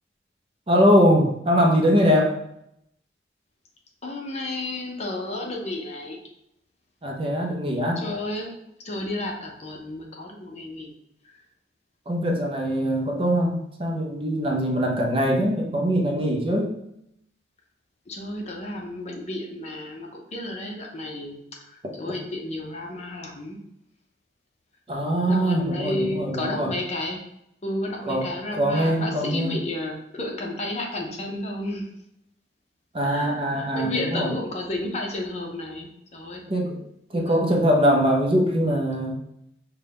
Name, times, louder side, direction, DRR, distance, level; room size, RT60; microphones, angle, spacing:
voice 1, 0.7-2.5 7.0-8.0 12.1-16.8 22.1-22.2 24.9-26.7 28.0-29.6 32.9-34.3 36.5-36.8 37.1-39.2, equal, 30° right, 0 dB, 0.6 m, -22 dB
voice 2, 4.0-6.2 8.0-8.5 8.8-10.9 11.2-11.3 18.1-21.4 21.7-23.6 25.2-27.2 27.6-31.9 33.0-36.4 37.1-37.6, left 1 dB, 35° left, 0 dB, 0.7 m, -32 dB
5.2 x 2.2 x 3.4 m, 0.79 s
head